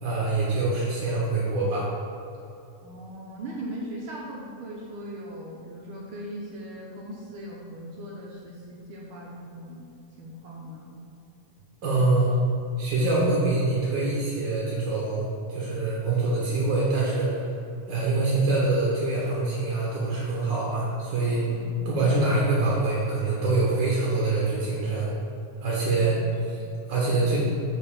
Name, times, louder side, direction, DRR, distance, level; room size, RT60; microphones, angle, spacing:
voice 1, 0.0-1.9 11.8-12.3 12.8-17.3 17.9-21.5 21.8-25.1 25.6-26.2 26.5-26.6 26.9-27.4, right 3 dB, 55° right, -5 dB, 1.4 m, -25 dB
voice 2, 2.8-9.8 10.2-11.0 21.4-21.9 25.9-26.3 26.6-26.8, right 1 dB, 70° right, -3 dB, 1.2 m, -39 dB
5.7 x 5.4 x 6.8 m, 2.7 s
omnidirectional pair, 3.3 m